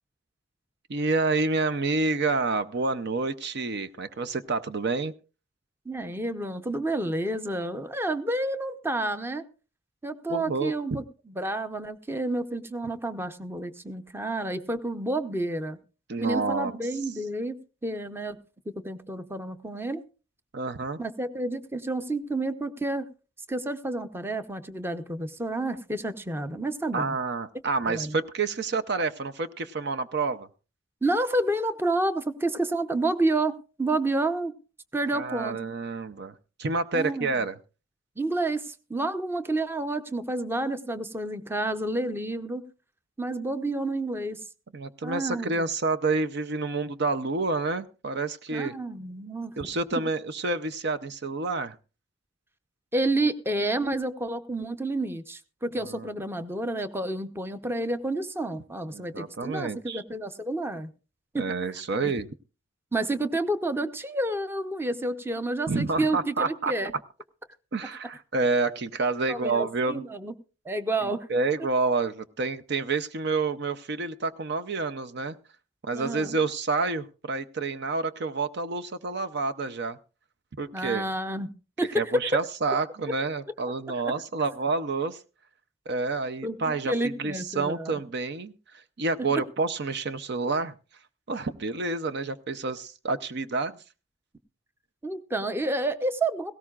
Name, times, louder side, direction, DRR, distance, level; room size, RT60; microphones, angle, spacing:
voice 1, 0.9-5.1 10.3-11.0 16.1-16.7 20.5-21.0 26.9-30.5 35.1-36.3 36.6-37.5 44.7-48.7 49.6-51.8 55.8-56.1 58.9-60.0 61.4-62.3 65.7-66.7 67.7-70.0 71.0-75.4 75.8-80.0 80.6-81.0 82.0-85.2 85.9-88.5 89.0-90.7 91.3-93.8, right 3 dB, 55° right, 10 dB, 0.6 m, -28 dB
voice 2, 5.9-9.4 10.0-15.8 16.2-18.4 18.8-20.0 21.0-23.0 23.5-27.1 27.9-28.2 31.0-34.5 34.9-35.6 36.9-37.4 38.2-42.6 43.2-44.4 45.0-45.5 48.5-49.5 49.9-50.0 52.9-60.9 61.3-61.5 61.9-62.1 62.9-66.9 69.3-70.3 70.6-71.3 75.9-76.4 80.7-81.5 81.8-82.4 84.0-84.1 86.4-87.9 95.0-96.5, right 2 dB, 10° right, 10 dB, 0.7 m, -29 dB
18.0 x 17.0 x 2.4 m, 0.35 s
head